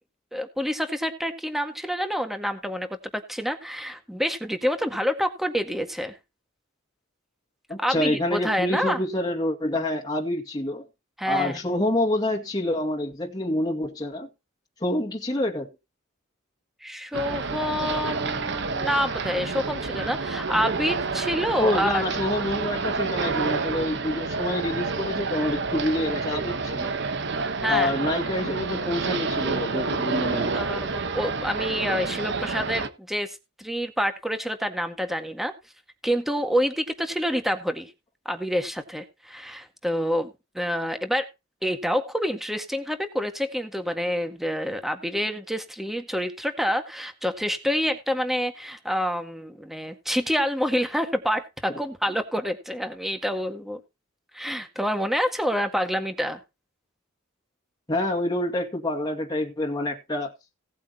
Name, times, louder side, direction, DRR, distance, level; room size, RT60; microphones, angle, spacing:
voice 1, 0.3-6.1 7.8-9.0 11.2-11.6 16.8-22.0 27.6-27.9 30.5-35.5 36.0-37.9 38.2-41.3 41.6-53.8 54.3-56.4, equal, ahead, 1.8 m, -27 dB
voice 2, 7.7-10.9 11.2-14.3 14.8-15.7 21.6-26.9 27.7-30.5 51.7-51.8 57.9-60.3, left 1 dB, 20° left, 2.2 m, -27 dB
sound 1, 17.1-32.9, right 4 dB, 60° right, 1.2 m, -29 dB
17.5 x 8.6 x 2.9 m
head